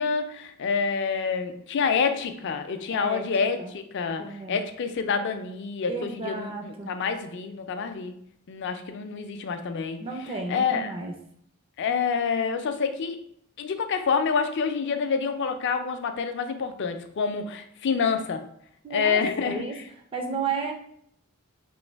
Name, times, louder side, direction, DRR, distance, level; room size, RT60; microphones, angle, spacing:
voice 1, 0.0-8.1 8.5-10.0 10.5-10.9 11.8-13.2 13.6-18.4 18.9-19.6, left 5 dB, 55° left, 7 dB, 0.4 m, -27 dB
voice 2, 2.9-3.2 3.6-3.7 4.2-4.6 5.9-6.9 10.0-11.1 18.8-19.8 20.1-20.7, right 4 dB, 25° right, 3 dB, 0.4 m, -33 dB
3.1 x 2.6 x 4.4 m, 0.68 s
head